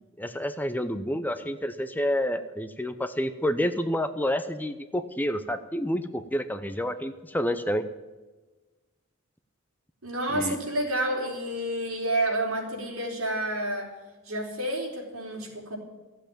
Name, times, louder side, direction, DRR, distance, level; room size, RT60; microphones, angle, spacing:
voice 1, 0.0-7.8 10.3-10.6, equal, 10° left, 10 dB, 0.6 m, -29 dB
voice 2, 10.0-13.9 14.3-15.8, right 1 dB, 75° right, -1 dB, 4.2 m, -29 dB
14.5 x 8.0 x 8.7 m, 1.2 s
head